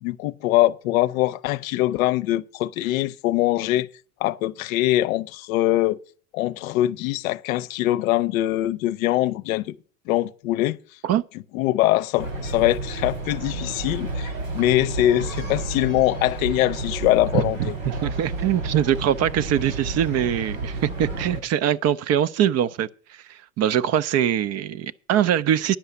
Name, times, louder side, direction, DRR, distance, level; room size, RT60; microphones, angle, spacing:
voice 1, 0.0-3.9 4.2-6.0 6.3-9.7 10.1-10.8 11.5-17.7, left 15 dB, 75° left, 0.7 m, -23 dB
sound 1, 12.2-21.4, right 2 dB, 85° right, 6.6 m, -31 dB
voice 2, 17.3-25.8, right 10 dB, 40° right, 0.5 m, -23 dB
10.5 x 5.6 x 8.2 m
hypercardioid pair, 90°, 41 cm